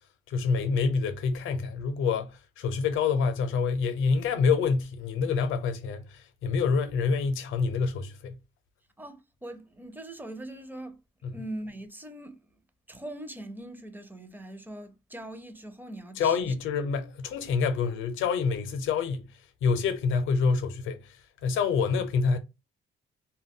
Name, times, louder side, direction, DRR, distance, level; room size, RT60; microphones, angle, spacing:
voice 1, 0.3-8.4 11.2-11.4 16.2-19.3 19.6-21.2 21.4-22.4, left 5 dB, 85° left, 0.5 m, -27 dB
voice 2, 9.0-11.0 11.3-12.4 12.9-16.5, right 1 dB, 10° right, 0.5 m, -41 dB
2.2 x 2.1 x 3.5 m
cardioid pair, 90°, 20 cm